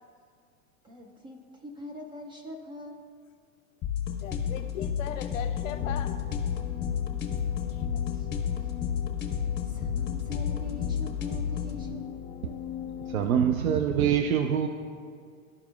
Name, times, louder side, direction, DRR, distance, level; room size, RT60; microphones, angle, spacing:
voice 1, 0.8-3.1 8.1-8.3 9.6-12.2, left 1 dB, 10° right, 2 dB, 0.4 m, -43 dB
sound 1, 3.8-11.8, left 8 dB, 25° left, 1.2 m, -31 dB
voice 2, 4.2-6.1 7.6-8.0, left 9 dB, 65° left, 6 dB, 0.7 m, -38 dB
sound 2, 5.5-13.3, left 10 dB, 45° left, 1.1 m, -38 dB
voice 3, 13.1-14.7, right 8 dB, 75° right, 7 dB, 0.6 m, -25 dB
13.5 x 4.9 x 2.3 m, 2.1 s
hypercardioid pair, 100°, 43 cm